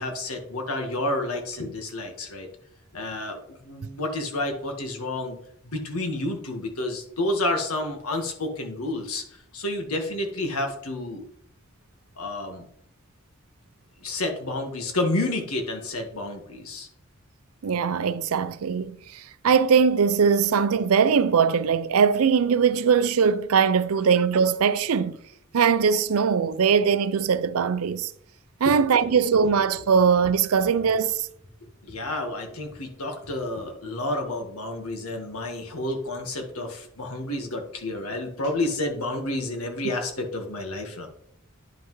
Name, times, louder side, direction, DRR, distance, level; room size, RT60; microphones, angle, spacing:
voice 1, 0.0-2.5 2.9-5.4 5.6-11.2 12.2-12.7 14.0-16.9 28.6-29.2 31.8-41.1, left 2 dB, 90° left, 1.5 m, -30 dB
voice 2, 17.6-25.2 25.5-28.1 28.6-31.3, right 6 dB, 85° right, 0.5 m, -21 dB
9.9 x 5.6 x 3.1 m
head